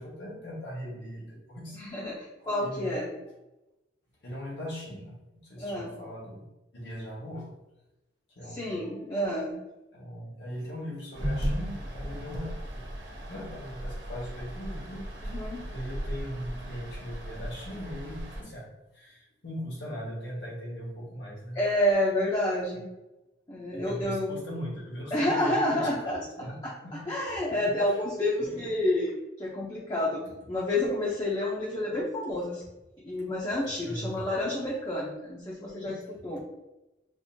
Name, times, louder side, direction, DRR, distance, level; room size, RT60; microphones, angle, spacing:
voice 1, 0.0-2.1 2.4-2.9 4.2-6.4 6.7-7.5 8.3-8.8 9.9-12.8 13.3-15.4 15.7-18.7 18.9-21.6 23.7-26.6 26.8-27.1 27.8-28.0 33.8-34.2, equal, 70° left, -5 dB, 1.4 m, -40 dB
voice 2, 1.7-3.1 5.6-5.9 8.5-9.6 15.2-15.6 21.5-22.9 23.5-24.4 25.1-26.2 27.1-30.2 30.5-32.6 33.0-36.4, left 1 dB, 25° left, -6 dB, 0.7 m, -29 dB
sound 1, 11.1-18.4, equal, 85° right, 1.1 m, -36 dB
5.2 x 2.6 x 2.7 m, 0.99 s
head